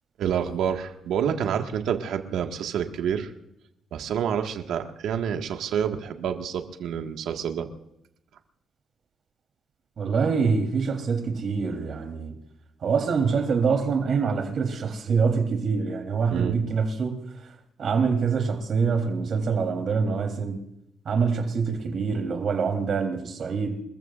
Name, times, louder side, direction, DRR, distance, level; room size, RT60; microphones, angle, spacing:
voice 1, 0.2-3.3 3.9-7.7 16.3-16.6, right 8 dB, 80° right, 1.8 m, -28 dB
voice 2, 10.0-12.4 12.8-17.2 17.8-20.6 21.1-23.8, right 5 dB, 55° right, 3.7 m, -25 dB
28.5 x 14.5 x 2.6 m
cardioid pair, 90°, 0 cm